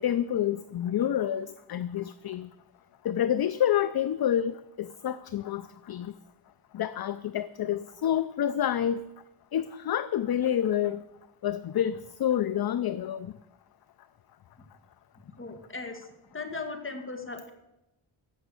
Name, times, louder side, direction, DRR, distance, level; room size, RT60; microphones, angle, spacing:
voice 1, 0.0-2.5 3.0-6.1 6.7-9.0 9.5-11.0 11.4-13.3, left 10 dB, 50° left, 14 dB, 0.5 m, -28 dB
voice 2, 15.4-17.5, left 3 dB, 25° left, 5 dB, 1.9 m, -38 dB
14.5 x 6.0 x 8.1 m, 0.92 s
wide cardioid pair, 110°, 50 cm